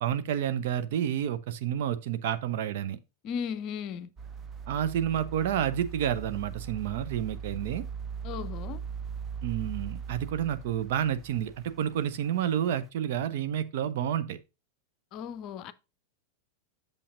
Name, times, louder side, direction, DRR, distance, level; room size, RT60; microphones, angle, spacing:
voice 1, 0.0-3.0 4.7-7.8 9.4-14.4, right 10 dB, 55° right, 0.8 m, -30 dB
voice 2, 3.2-4.1 8.2-8.8 15.1-15.7, left 7 dB, 40° left, 0.6 m, -36 dB
sound 1, 4.2-12.4 12.8-12.9, right 6 dB, 20° right, 0.8 m, -40 dB
8.5 x 6.8 x 2.6 m
figure-of-eight pair, 90°, 0 cm